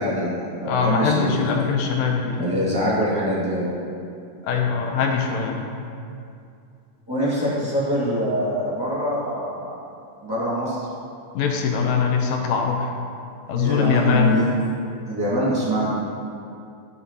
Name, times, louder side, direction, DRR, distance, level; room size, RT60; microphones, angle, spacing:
voice 1, 0.0-1.6 2.4-3.7 7.1-9.7 10.2-10.9 13.5-14.5 15.1-15.9, equal, 10° right, -8 dB, 1.9 m, -24 dB
voice 2, 0.7-2.4 4.4-5.7 11.3-12.9 13.5-14.4, left 6 dB, 85° left, 1 dB, 2.6 m, -22 dB
14.0 x 5.4 x 4.1 m, 2.5 s
omnidirectional pair, 4.0 m